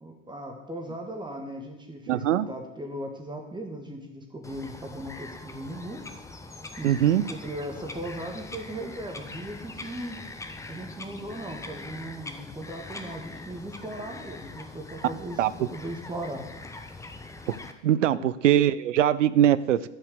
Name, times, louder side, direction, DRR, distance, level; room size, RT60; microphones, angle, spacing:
voice 1, 0.0-6.0 6.8-10.2 10.7-16.4 18.1-18.3, right 1 dB, 10° right, 2 dB, 1.7 m, -38 dB
voice 2, 2.1-2.5 6.8-7.2 15.4-15.5 17.5-17.6 17.8-19.9, right 11 dB, 70° right, 17 dB, 0.6 m, -22 dB
Bird vocalization bird call bird song, 4.4-17.7, left 3 dB, 10° left, 0.7 m, -42 dB
11.0 x 5.6 x 6.6 m, 1.0 s
figure-of-eight pair, 75°, 38 cm